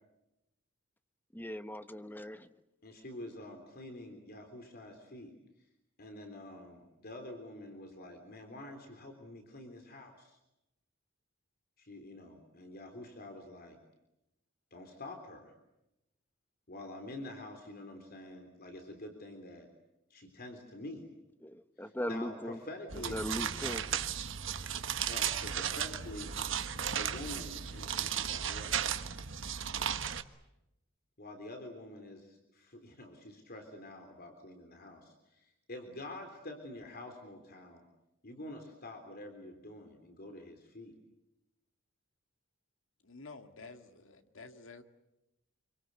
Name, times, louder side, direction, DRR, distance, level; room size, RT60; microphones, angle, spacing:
voice 1, 1.3-2.5 21.4-22.6 23.1-23.8, equal, 10° left, 1.1 m, -39 dB
voice 2, 2.8-5.3 6.0-10.4 11.8-13.8 14.7-15.5 16.7-19.7 20.1-21.1 21.8-23.2 25.1-26.3 27.0-28.9 31.2-37.8 38.2-41.0, left 1 dB, 50° left, 3.6 m, -47 dB
sound 1, 22.9-30.2, right 8 dB, 70° right, 1.4 m, -35 dB
voice 3, 43.0-44.8, left 3 dB, 70° left, 2.2 m, -50 dB
26.5 x 24.5 x 8.2 m
head